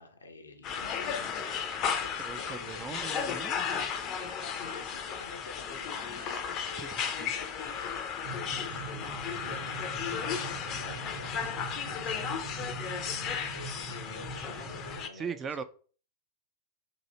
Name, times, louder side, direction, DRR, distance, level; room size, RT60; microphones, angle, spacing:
voice 1, 0.0-3.3 4.4-8.0 8.3-15.6, left 3 dB, 80° left, 0.7 m, -49 dB
sound 1, 0.6-15.1, left 7 dB, 35° left, 0.5 m, -35 dB
voice 2, 2.2-3.6 6.8-7.3 15.1-15.6, right 6 dB, 20° right, 0.3 m, -39 dB
sound 2, 8.2-15.0, right 4 dB, 55° right, 1.0 m, -43 dB
2.8 x 2.6 x 4.1 m
figure-of-eight pair, 90°, 0 cm